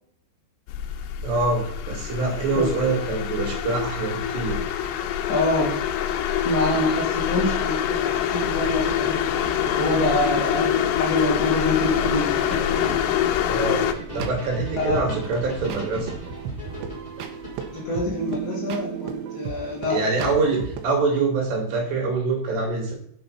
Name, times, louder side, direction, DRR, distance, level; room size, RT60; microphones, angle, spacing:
sound 1, 0.7-13.9, left 10 dB, 90° left, 3.0 m, -25 dB
voice 1, 1.2-4.6 13.5-13.8 14.1-16.1 19.9-22.9, right 3 dB, 70° right, 0 dB, 5.1 m, -25 dB
voice 2, 5.3-5.8 6.4-9.3 9.7-12.6 14.8-15.0 17.7-20.3, left 1 dB, 45° left, -3 dB, 3.8 m, -26 dB
sound 2, 8.0-18.0, right 1 dB, 10° left, 4.5 m, -36 dB
sound 3, 13.8-20.9, right 8 dB, 90° right, 3.4 m, -35 dB
8.6 x 6.9 x 5.6 m, 0.68 s
omnidirectional pair, 5.2 m